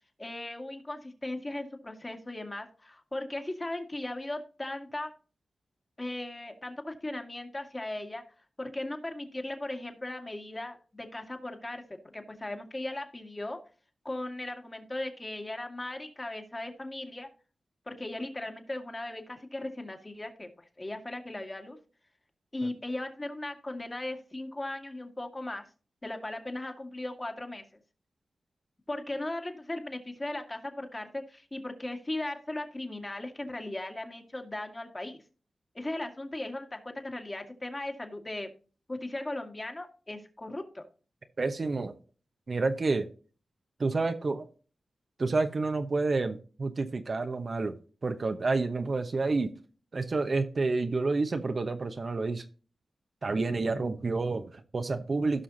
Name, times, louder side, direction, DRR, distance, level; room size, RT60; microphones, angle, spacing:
voice 1, 0.2-5.1 6.0-8.2 8.6-13.6 14.0-17.3 17.9-20.5 20.8-21.8 22.5-25.6 26.0-27.6 28.9-35.2 35.8-38.5 38.9-40.8, left 1 dB, 30° left, 4 dB, 1.9 m, -37 dB
voice 2, 41.4-41.9 42.5-43.1 43.8-44.5 45.2-47.8 48.0-49.5 49.9-52.4 53.2-55.4, right 3 dB, 55° right, 7 dB, 0.9 m, -29 dB
16.5 x 5.7 x 2.7 m, 0.38 s
cardioid pair, 45°, 0 cm